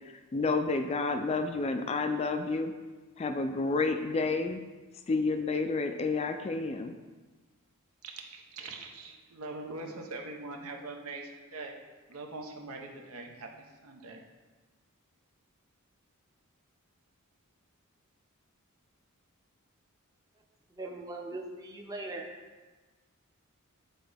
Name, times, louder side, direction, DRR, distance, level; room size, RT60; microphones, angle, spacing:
voice 1, 0.3-2.8 3.2-4.6 5.1-6.9, left 3 dB, 30° left, 7 dB, 0.3 m, -30 dB
voice 2, 8.0-11.7 12.1-14.2, right 3 dB, 75° right, 2 dB, 0.8 m, -42 dB
voice 3, 20.7-22.3, right 2 dB, 15° right, 0 dB, 0.7 m, -40 dB
9.1 x 3.9 x 3.4 m, 1.3 s
head